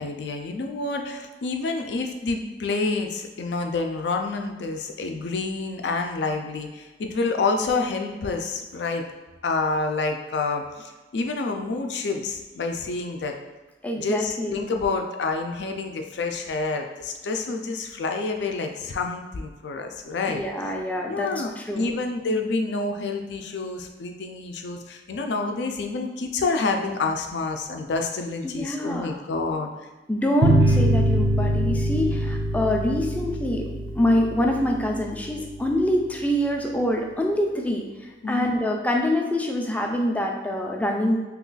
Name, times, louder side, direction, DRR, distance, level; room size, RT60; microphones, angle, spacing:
voice 1, 0.0-9.0 9.4-13.3 14.0-20.7 21.1-29.7 38.2-38.7, left 3 dB, 75° left, 4 dB, 0.4 m, -28 dB
voice 2, 13.8-14.6 20.3-21.3 21.6-21.9 28.4-29.1 30.1-41.2, left 1 dB, 10° left, 1 dB, 0.3 m, -25 dB
sound 1, 30.4-35.5, right 1 dB, 85° right, 0.7 m, -23 dB
2.9 x 2.4 x 3.8 m, 1.2 s
head